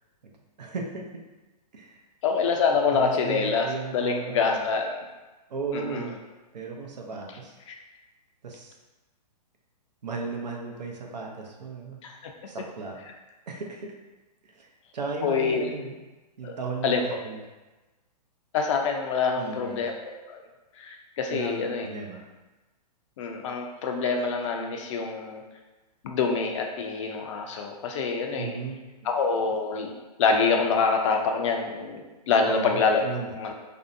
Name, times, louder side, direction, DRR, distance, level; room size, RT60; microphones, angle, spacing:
voice 1, 0.6-1.0 1.7-2.0 2.9-4.6 5.5-6.1 6.5-7.5 8.4-8.7 10.0-12.2 12.5-13.0 13.5-13.9 14.4-16.0 16.4-17.4 19.4-19.8 21.3-22.2 28.4-29.1 32.4-33.3, right 4 dB, 85° right, 1 dB, 0.6 m, -35 dB
voice 2, 2.2-3.7 3.9-4.9 5.7-6.1 12.0-12.1 15.2-15.7 16.4-16.6 16.8-17.0 18.5-20.4 20.8-21.9 23.2-25.4 26.0-28.6 29.0-29.9 30.2-33.0 33.3-33.5, left 5 dB, 45° left, 3 dB, 0.4 m, -26 dB
2.6 x 2.1 x 2.5 m, 1.1 s
hypercardioid pair, 130°, 21 cm